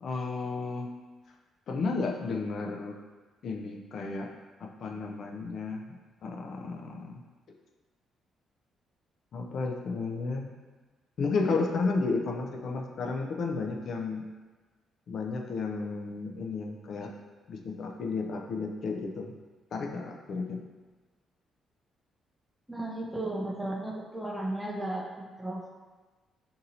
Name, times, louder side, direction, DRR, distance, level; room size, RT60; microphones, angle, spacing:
voice 1, 0.0-0.9 1.7-3.0 3.4-4.3 4.6-7.2 9.3-10.5 11.2-14.3 15.1-17.1 17.5-19.3 19.7-20.6, left 4 dB, 60° left, 2 dB, 0.4 m, -33 dB
voice 2, 22.7-25.7, right 1 dB, 5° right, -1 dB, 0.5 m, -35 dB
2.6 x 2.6 x 4.2 m, 1.3 s
cardioid pair, 90°, 0 cm